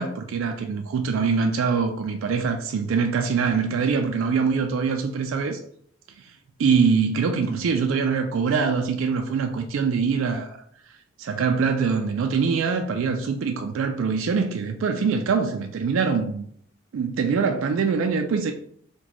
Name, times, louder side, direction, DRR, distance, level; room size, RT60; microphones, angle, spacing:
voice 1, 0.0-5.6 6.6-10.6 11.2-16.5 16.9-18.5, right 5 dB, 65° right, 0.3 m, -23 dB
3.0 x 2.2 x 3.9 m
head